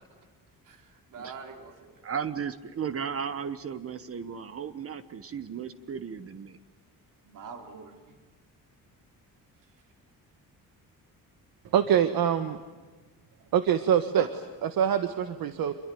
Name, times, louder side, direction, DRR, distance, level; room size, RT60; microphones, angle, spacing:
voice 1, 0.6-2.0 7.2-8.2 9.6-9.7 14.2-14.3, right 5 dB, 65° right, 5 dB, 3.7 m, -44 dB
voice 2, 2.0-6.6, right 7 dB, 40° right, 13 dB, 1.1 m, -35 dB
voice 3, 11.7-12.6 13.5-14.2 14.6-15.7, right 9 dB, 85° right, 10 dB, 1.5 m, -24 dB
27.5 x 23.0 x 9.2 m, 1.2 s
cardioid pair, 160°, 34 cm